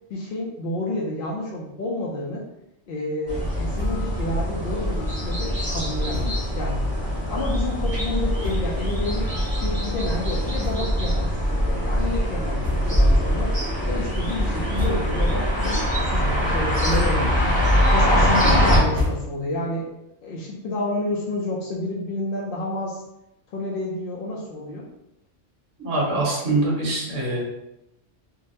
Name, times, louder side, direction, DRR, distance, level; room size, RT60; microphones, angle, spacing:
voice 1, 0.1-2.5 2.9-6.8 7.3-9.3 9.6-13.5 13.9-17.4 17.9-19.9 20.2-23.0 23.5-24.9, left 1 dB, 60° left, -3 dB, 0.6 m, -30 dB
sound 1, 3.3-18.8, equal, 5° left, 0.9 m, -23 dB
sound 2, 3.7-4.2 4.5-4.6 4.9-5.1 6.1-6.5 7.2-7.3 8.0-8.1 8.4-8.9 9.5-9.6 10.5-11.2 11.6-11.7 12.6-13.2 13.6-14.0 14.5-15.4 15.8-16.2 16.6-17.5 17.8-19.7, left 2 dB, 70° right, 1.1 m, -32 dB
voice 2, 25.8-27.4, right 2 dB, 90° right, -4 dB, 1.4 m, -24 dB
3.8 x 2.0 x 2.7 m, 0.86 s
omnidirectional pair, 1.2 m